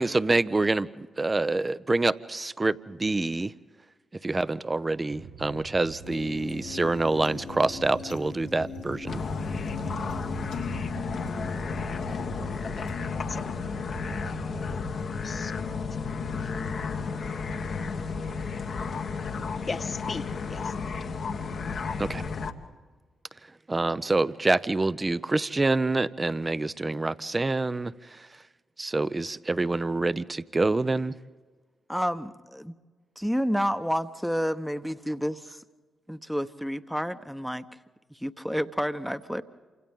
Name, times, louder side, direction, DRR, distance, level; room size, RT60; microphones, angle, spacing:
voice 1, 0.0-3.5 4.2-9.2 22.0-22.2 23.7-27.9 28.8-31.1, right 2 dB, 30° right, 0.7 m, -26 dB
sound 1, 5.1-15.0, right 5 dB, 65° right, 0.9 m, -43 dB
sound 2, 6.0-14.4, left 7 dB, 85° left, 2.0 m, -41 dB
sound 3, 9.1-22.5, left 5 dB, 65° left, 1.3 m, -32 dB
voice 2, 19.7-20.7, left 4 dB, 45° left, 1.4 m, -37 dB
voice 3, 31.9-32.8 33.2-35.6 36.1-37.6 38.1-39.4, equal, ahead, 1.0 m, -29 dB
28.0 x 26.0 x 3.7 m
hypercardioid pair, 40°, 0 cm